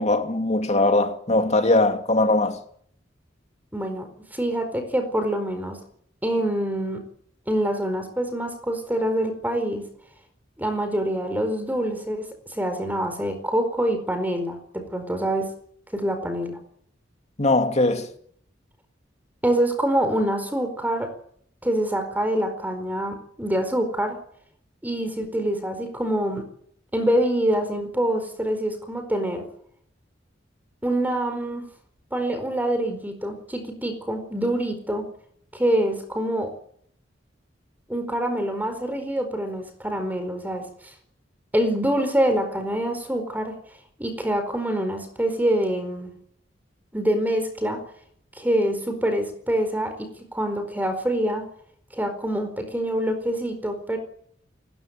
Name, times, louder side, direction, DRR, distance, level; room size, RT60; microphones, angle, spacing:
voice 1, 0.0-2.6 17.4-18.1, left 2 dB, 35° left, 2.6 m, -20 dB
voice 2, 3.7-5.8 6.2-7.0 7.5-9.8 10.6-15.5 15.9-16.6 19.4-21.1 21.6-24.2 24.8-26.4 26.9-29.4 30.8-31.7 32.1-35.0 35.5-36.5 37.9-40.6 41.5-43.5 44.0-46.1 46.9-47.8 48.3-51.4 51.9-54.0, right 1 dB, 10° right, 4.5 m, -25 dB
28.5 x 14.5 x 9.4 m
head